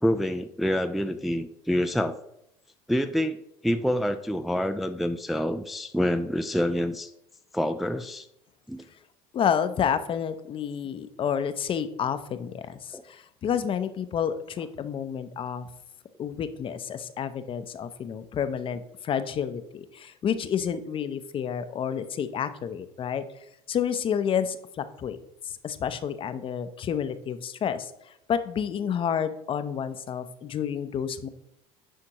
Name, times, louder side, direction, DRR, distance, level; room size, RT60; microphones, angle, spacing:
voice 1, 0.0-2.2 2.9-7.1 7.5-8.3 8.7-8.8 12.9-13.0, equal, ahead, 7 dB, 0.3 m, -27 dB
voice 2, 9.3-15.7 16.2-23.2 23.7-25.2 25.5-27.9 28.3-31.3, left 8 dB, 40° left, 11 dB, 0.6 m, -30 dB
10.0 x 4.3 x 2.9 m, 0.80 s
supercardioid pair, 95°, 14 cm